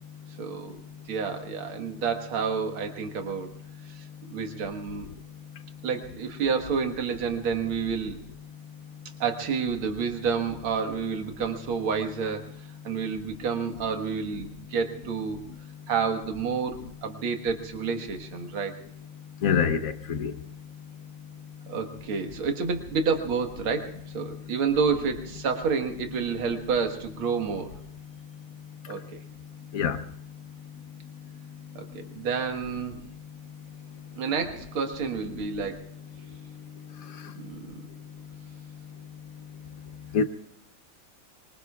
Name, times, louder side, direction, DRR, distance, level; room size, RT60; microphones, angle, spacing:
voice 1, 0.4-0.8 1.1-3.5 3.9-5.1 5.8-8.2 9.2-15.4 15.9-18.8 21.7-27.7 28.9-29.2 31.7-33.0 34.1-35.9 37.4-37.9, right 5 dB, 75° right, 2.4 m, -29 dB
voice 2, 19.4-20.3 29.7-30.0 40.1-40.2, left 6 dB, 55° left, 1.0 m, -24 dB
25.0 x 24.0 x 2.4 m
omnidirectional pair, 2.3 m